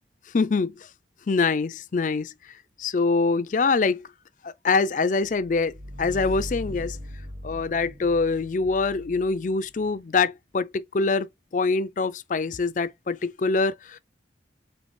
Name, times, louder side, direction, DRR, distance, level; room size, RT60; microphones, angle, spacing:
voice 1, 0.3-0.9 1.3-4.1 4.4-7.0 7.4-14.0, left 4 dB, 45° left, 0.4 m, -25 dB
sound 1, 5.3-9.9, equal, 90° right, 1.9 m, -39 dB
5.1 x 3.2 x 3.2 m
head